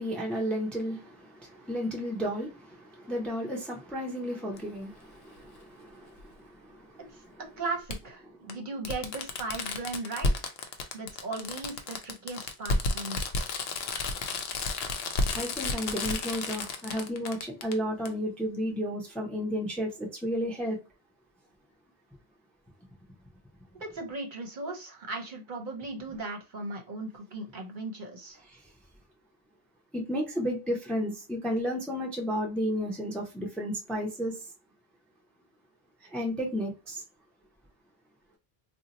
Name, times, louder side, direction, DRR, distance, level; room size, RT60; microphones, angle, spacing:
voice 1, 0.0-7.4 8.4-8.6 15.3-20.8 28.5-28.6 29.9-34.4 36.1-37.0, equal, ahead, 0.5 m, -33 dB
Fireworks, 4.6-4.7 6.2-6.3 7.9-8.0 8.5-8.6 8.9-17.7 18.1-18.2, left 3 dB, 75° left, 0.8 m, -31 dB
voice 2, 7.1-10.4 10.9-13.2 23.8-28.4, right 3 dB, 50° right, 0.8 m, -37 dB
2.7 x 2.1 x 3.9 m
omnidirectional pair, 1.1 m